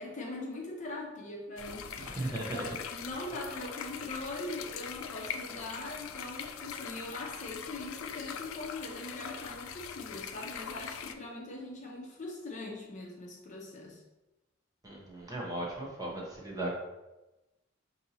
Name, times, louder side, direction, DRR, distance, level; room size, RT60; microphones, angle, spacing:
voice 1, 0.0-2.1 2.5-14.0, left 2 dB, 40° left, -1 dB, 0.7 m, -41 dB
sound 1, 1.6-11.1, left 7 dB, 80° left, 0.3 m, -42 dB
voice 2, 2.0-2.6 14.8-16.8, right 1 dB, 20° right, -3 dB, 0.9 m, -37 dB
5.2 x 2.7 x 2.8 m, 1.0 s
head